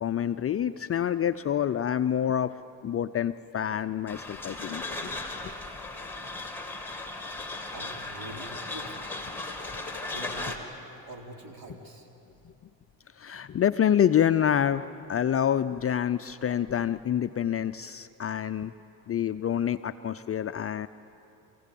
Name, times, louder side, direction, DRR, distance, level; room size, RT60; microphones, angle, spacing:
voice 1, 0.0-5.1 5.4-5.5 13.2-18.7 19.1-20.9, left 9 dB, 30° left, 10 dB, 0.5 m, -27 dB
sound 1, 4.1-10.6, left 2 dB, 5° left, 2.6 m, -37 dB
voice 2, 7.7-9.1 10.0-10.6 11.1-12.1, right 2 dB, 50° right, 1 dB, 3.8 m, -44 dB
26.5 x 16.5 x 8.5 m, 2.8 s
supercardioid pair, 85°, 46 cm